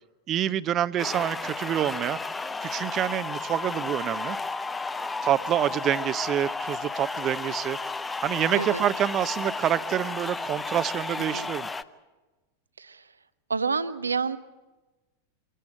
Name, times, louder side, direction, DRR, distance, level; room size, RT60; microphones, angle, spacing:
voice 1, 0.3-2.2 2.6-4.4 5.2-7.8 8.2-11.7, right 11 dB, 30° right, 15 dB, 0.7 m, -27 dB
sound 1, 1.0-11.8, left 3 dB, 10° left, 0.7 m, -33 dB
voice 2, 13.5-14.4, right 5 dB, 75° right, 15 dB, 0.8 m, -28 dB
25.0 x 17.0 x 8.7 m, 1.2 s
figure-of-eight pair, 90°, 0 cm